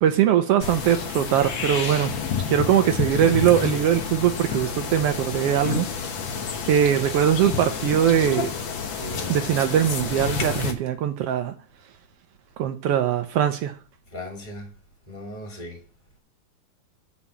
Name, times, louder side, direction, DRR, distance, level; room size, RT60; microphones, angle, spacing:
voice 1, 0.0-2.1 2.5-5.9 6.5-8.5 9.3-11.5 12.6-13.8, right 10 dB, 85° right, 1.3 m, -21 dB
sound 1, 0.6-10.7, left 6 dB, 60° left, 1.4 m, -29 dB
voice 2, 9.0-9.4 14.1-14.7 15.1-15.8, left 1 dB, 15° left, 2.2 m, -37 dB
8.8 x 4.2 x 7.1 m
omnidirectional pair, 3.5 m